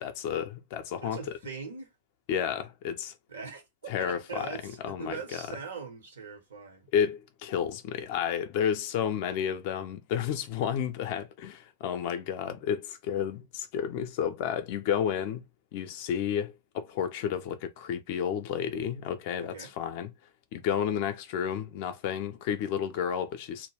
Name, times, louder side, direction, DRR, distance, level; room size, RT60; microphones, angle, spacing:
voice 1, 0.0-1.2 2.3-3.1 3.9-5.4 6.9-15.4 15.7-20.1 20.5-23.7, left 8 dB, 50° left, 0.4 m, -31 dB
voice 2, 1.0-1.9 3.3-6.9 19.4-19.7, right 5 dB, 70° right, 0.9 m, -41 dB
2.3 x 2.1 x 3.1 m
figure-of-eight pair, 90°, 0 cm